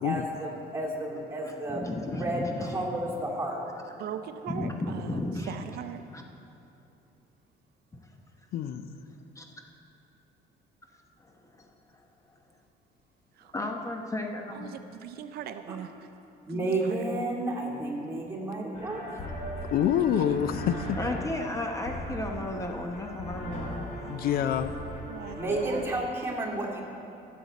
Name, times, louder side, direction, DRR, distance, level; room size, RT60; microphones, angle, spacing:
voice 1, 0.0-3.7 15.7-15.8 16.5-19.6 25.4-26.8, right 2 dB, 15° right, -4 dB, 2.3 m, -32 dB
voice 2, 1.4-2.9 4.5-5.5 9.4-9.5 11.2-12.0 13.5-14.7 19.1-19.2 21.0-23.6, left 2 dB, 20° left, 2 dB, 0.9 m, -34 dB
voice 3, 4.0-6.1 13.3-13.5 14.5-16.1 16.5-17.1 20.0-20.4 20.7-20.8 25.1-25.9, right 9 dB, 70° right, 9 dB, 0.5 m, -40 dB
voice 4, 8.5-9.0 19.7-21.0 24.1-24.7, left 9 dB, 65° left, 11 dB, 0.5 m, -26 dB
sound 1, 18.7-25.8, equal, 45° left, 2.5 m, -39 dB
15.5 x 7.6 x 4.1 m, 2.8 s
cardioid pair, 110°, 17 cm